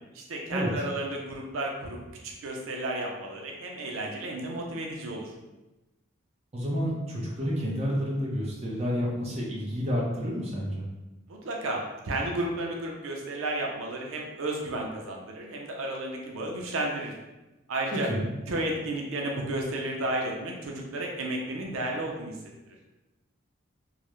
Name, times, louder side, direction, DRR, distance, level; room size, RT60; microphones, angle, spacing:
voice 1, 0.1-5.3 11.3-17.1 17.7-18.1 18.5-22.4, right 1 dB, 90° right, 0 dB, 0.5 m, -32 dB
voice 2, 6.5-10.8 17.9-18.3, equal, 30° right, -4 dB, 0.5 m, -29 dB
2.3 x 2.0 x 2.9 m, 1.0 s
head